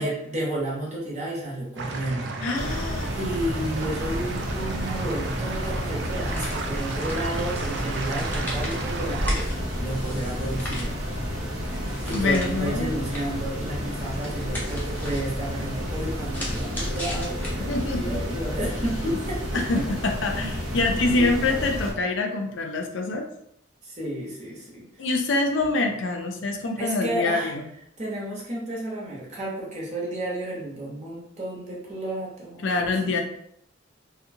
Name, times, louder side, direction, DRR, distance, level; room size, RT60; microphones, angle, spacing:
voice 1, 0.0-2.3 2.7-2.8 3.1-10.9 12.0-19.8 21.1-21.3 23.8-24.9 26.8-27.5 28.0-33.1, right 1 dB, 35° right, -4 dB, 0.8 m, -32 dB
sound 1, 1.8-9.3, right 3 dB, 55° right, 0.3 m, -33 dB
voice 2, 2.4-3.1 12.1-12.9 17.7-18.2 19.5-23.3 25.0-27.6 32.6-33.2, left 3 dB, 70° left, 3 dB, 0.4 m, -25 dB
sound 2, 2.5-21.9, equal, 80° right, 0.7 m, -31 dB
sound 3, 6.1-17.9, equal, 10° left, 0.5 m, -36 dB
2.6 x 2.1 x 2.6 m, 0.72 s
head